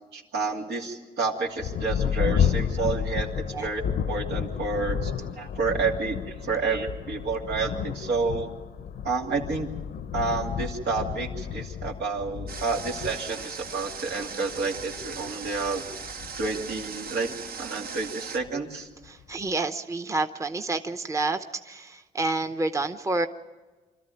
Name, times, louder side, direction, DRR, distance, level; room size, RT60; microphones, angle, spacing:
voice 1, 0.1-3.8 4.1-8.5 9.0-9.7 10.1-15.8 16.4-18.9, right 4 dB, 85° right, 0 dB, 2.7 m, -30 dB
Thunder, 1.6-17.6 18.4-18.5 19.1-19.5, left 8 dB, 75° left, 0.8 m, -32 dB
Water, 12.5-18.4, right 6 dB, 65° right, 1.2 m, -39 dB
voice 2, 19.1-23.3, right 3 dB, 20° right, 8 dB, 0.8 m, -29 dB
25.5 x 13.5 x 9.1 m, 1.3 s
cardioid pair, 100°, 17 cm